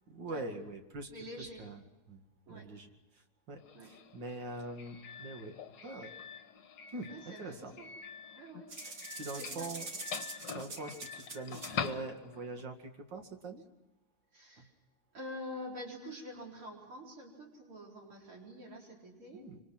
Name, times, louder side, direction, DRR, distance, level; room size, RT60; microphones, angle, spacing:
voice 1, 0.1-1.1 1.4-2.2 2.5-5.6 5.8-6.1 6.9-7.7 8.8-9.9 10.5-13.7 14.6-14.7 19.3-19.6, right 2 dB, 55° right, 4 dB, 2.7 m, -44 dB
voice 2, 1.1-1.6 2.5-2.7 3.7-3.9 7.1-7.9 8.4-8.7 9.0-9.7 14.3-14.7 15.1-19.5, equal, 80° right, -1 dB, 5.1 m, -47 dB
Doorbell, 3.6-12.6, left 7 dB, 60° left, 1.8 m, -45 dB
sound 1, 8.7-11.9, right 3 dB, 40° right, 2.3 m, -44 dB
26.0 x 24.0 x 6.0 m, 1.0 s
omnidirectional pair, 2.4 m